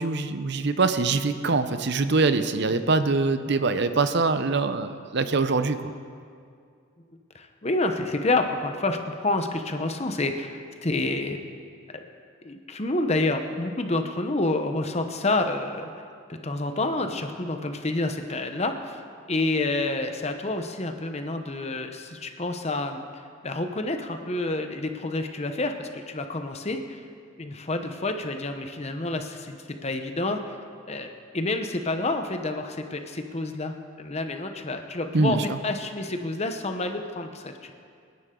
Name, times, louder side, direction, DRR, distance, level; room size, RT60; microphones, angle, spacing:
voice 1, 0.0-5.9 35.1-35.6, right 3 dB, 55° right, 10 dB, 0.7 m, -24 dB
voice 2, 7.3-11.4 11.9-12.1 12.4-15.9 16.3-19.0 19.3-23.0 23.4-27.0 27.4-30.6 30.9-37.7, left 2 dB, 30° left, 6 dB, 0.9 m, -28 dB
26.5 x 11.0 x 3.8 m, 2.3 s
head